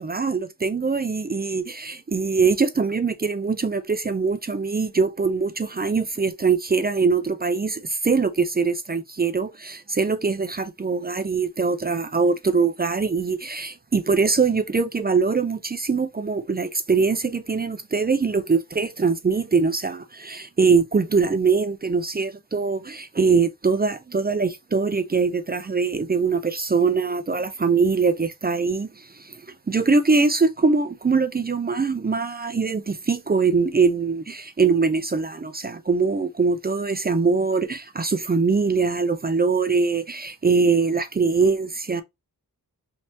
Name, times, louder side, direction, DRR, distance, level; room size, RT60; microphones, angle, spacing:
voice 1, 0.0-29.4 29.7-42.0, right 4 dB, 25° right, 0.4 m, -22 dB
3.3 x 2.8 x 2.8 m
wide cardioid pair, 65°, 37 cm